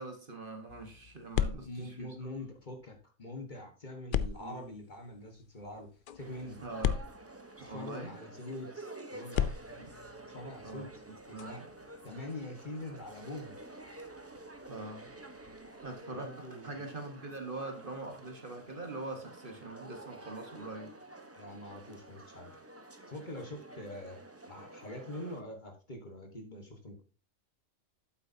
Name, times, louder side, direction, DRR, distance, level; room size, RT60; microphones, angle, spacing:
voice 1, 0.0-2.2 4.4-4.6 6.6-7.0 7.7-8.1 9.8-9.9 10.6-11.7 14.7-15.1 15.8-21.0, right 2 dB, 45° right, 1.4 m, -43 dB
sound 1, 0.7-3.0 4.1-8.0 9.2-15.9, left 9 dB, 60° left, 0.5 m, -39 dB
voice 2, 1.5-6.6 7.6-9.5 10.3-10.9 11.3-11.6 12.0-13.6 16.1-16.9 21.4-22.5 23.1-24.2 24.5-27.0, left 1 dB, 35° left, 1.5 m, -44 dB
sound 2, 6.2-25.4, right 2 dB, 15° right, 0.8 m, -50 dB
8.5 x 8.0 x 2.7 m
omnidirectional pair, 1.3 m